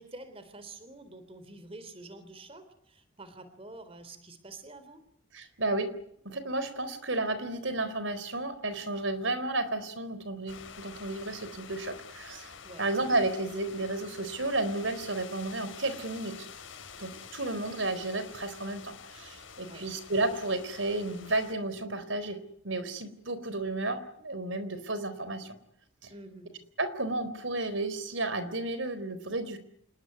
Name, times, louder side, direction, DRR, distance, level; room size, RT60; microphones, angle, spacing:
voice 1, 0.0-5.0 12.6-12.9 19.6-19.9 26.1-26.5, right 2 dB, 30° right, 11 dB, 3.8 m, -47 dB
voice 2, 5.3-5.9 6.2-12.5 12.8-16.4 17.0-25.6 26.0-26.1 26.8-29.6, right 2 dB, 75° right, 13 dB, 4.0 m, -32 dB
sound 1, 10.5-21.5, left 6 dB, 75° left, 4.5 m, -48 dB
28.0 x 21.0 x 9.6 m, 0.68 s
head